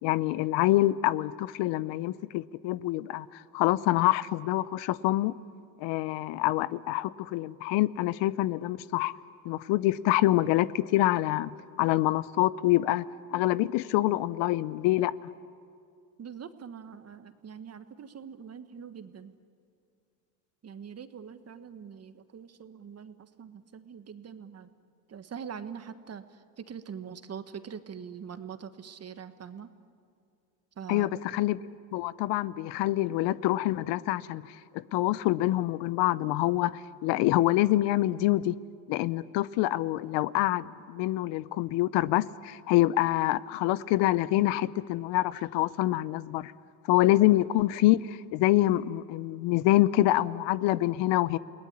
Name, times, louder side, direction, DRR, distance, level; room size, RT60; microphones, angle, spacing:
voice 1, 0.0-5.3 5.8-9.1 9.4-11.5 11.8-13.0 13.3-15.1 30.9-31.6 31.9-34.4 34.9-38.5 38.9-46.5 46.9-51.4, left 16 dB, 65° left, 18 dB, 0.8 m, -26 dB
voice 2, 16.2-19.3 20.6-24.7 25.1-26.2 26.7-29.7 30.8-31.1, right 7 dB, 30° right, 10 dB, 1.5 m, -43 dB
29.0 x 19.5 x 9.8 m, 2.4 s
supercardioid pair, 95°, 47 cm